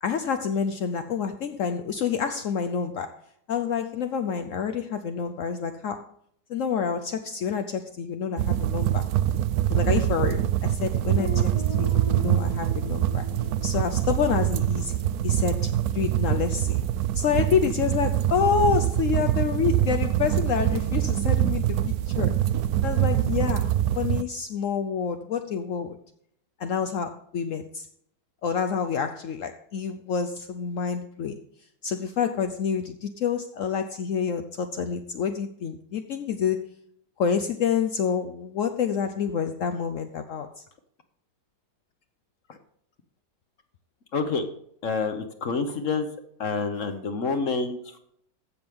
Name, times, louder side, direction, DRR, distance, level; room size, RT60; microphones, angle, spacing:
voice 1, 0.0-3.2 3.5-6.1 6.5-9.1 9.7-13.3 13.6-14.9 15.2-16.8 17.1-22.4 22.8-26.0 26.6-27.9 28.4-31.4 31.8-36.7 37.2-40.6, left 7 dB, 75° left, 0.7 m, -28 dB
sound 1, 8.4-24.2, right 12 dB, 80° right, 0.8 m, -24 dB
Guitar, 11.2-15.8, left 6 dB, 25° left, 0.6 m, -41 dB
voice 2, 44.1-44.5 44.8-46.1 46.4-48.0, left 4 dB, 50° left, 1.1 m, -28 dB
15.0 x 6.1 x 3.6 m
omnidirectional pair, 2.1 m